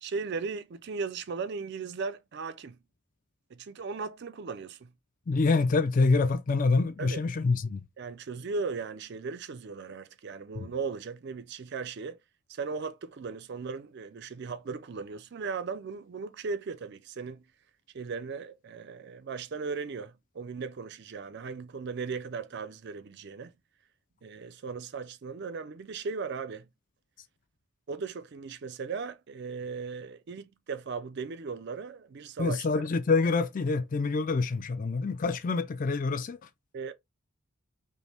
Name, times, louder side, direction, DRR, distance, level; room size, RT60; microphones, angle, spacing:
voice 1, 0.0-2.8 3.5-4.9 7.0-7.2 8.0-12.2 12.5-17.4 17.9-23.5 24.2-26.7 27.9-32.7 36.7-36.9, right 5 dB, 50° right, 0.4 m, -37 dB
voice 2, 5.3-7.8 10.6-10.7 32.4-36.4, left 3 dB, 35° left, 0.3 m, -26 dB
5.2 x 2.1 x 3.3 m
head